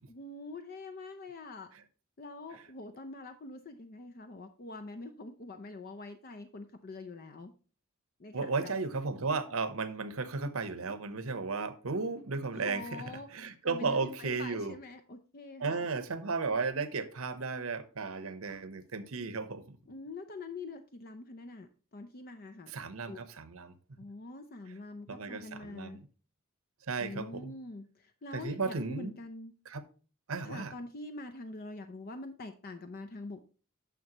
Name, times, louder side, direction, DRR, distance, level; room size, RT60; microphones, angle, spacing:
voice 1, 0.1-1.7 2.2-7.5 8.2-8.7 12.5-15.9 19.9-22.7 23.1-23.2 24.0-26.0 27.0-29.5 30.4-33.4, left 2 dB, 45° left, 0.6 m, -45 dB
voice 2, 8.3-13.0 13.3-14.8 15.6-19.8 22.7-23.7 25.1-26.0 26.9-27.5 28.3-29.1 29.7-29.8 30.3-30.7, right 4 dB, 85° right, 0.9 m, -34 dB
9.3 x 6.5 x 3.0 m
head